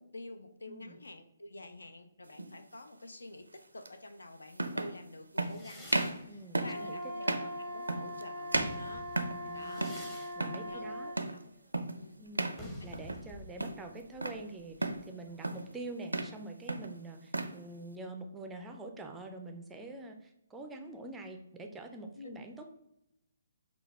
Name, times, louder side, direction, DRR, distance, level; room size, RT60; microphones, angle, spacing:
voice 1, 0.0-9.1 9.5-9.9 10.6-11.4 11.9-12.2 22.2-22.4, left 2 dB, 70° left, 8 dB, 0.5 m, -49 dB
voice 2, 0.7-1.0 6.3-7.4 9.4-11.1 12.2-22.7, right 2 dB, 10° right, 4 dB, 0.4 m, -46 dB
sound 1, 2.3-2.5 3.9-4.0 4.5-5.0 5.4-5.6 5.9-6.2 6.6-6.8 7.2-7.5 7.9-8.2 8.5-9.5 9.8-10.1 10.3-10.7 11.2-11.4 11.7-12.0 12.4-12.6 12.9-13.3 13.6-14.4 14.8-15.1 15.4-15.7 16.0-16.4 16.7-17.6, right 2 dB, 75° right, 0.4 m, -34 dB
sound 2, 5.4-7.9 8.3-15.8, left 1 dB, 15° left, 0.8 m, -51 dB
Wind instrument woodwind instrument, 6.6-11.2, equal, 40° left, 1.6 m, -41 dB
6.1 x 2.3 x 3.2 m, 0.83 s
figure-of-eight pair, 135°, 0 cm